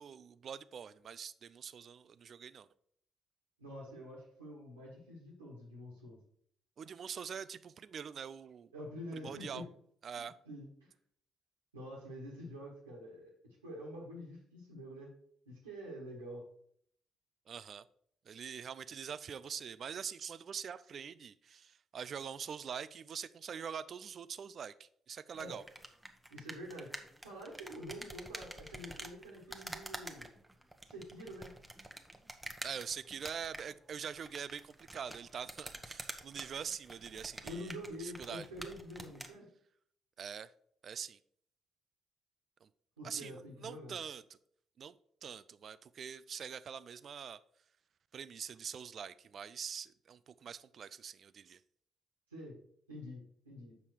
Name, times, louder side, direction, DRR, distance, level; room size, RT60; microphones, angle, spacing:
voice 1, 0.0-2.7 6.8-8.7 9.1-9.6 10.0-10.3 17.5-17.8 18.3-25.6 32.6-38.5 40.2-40.5 40.8-41.2 42.6-42.7 43.0-44.4 44.8-44.9 45.2-47.4 48.1-51.6, right 7 dB, 50° right, 16 dB, 0.4 m, -44 dB
voice 2, 3.6-6.2 8.7-9.7 10.1-10.9 11.7-15.1 15.4-16.5 25.3-25.6 26.3-30.4 30.9-31.5 37.4-39.5 43.0-44.0 52.3-52.6 52.9-53.8, equal, 85° right, -4 dB, 1.6 m, -47 dB
sound 1, 25.3-39.4, right 1 dB, 10° right, 1.0 m, -48 dB
7.1 x 5.4 x 4.6 m, 0.65 s
figure-of-eight pair, 45°, 0 cm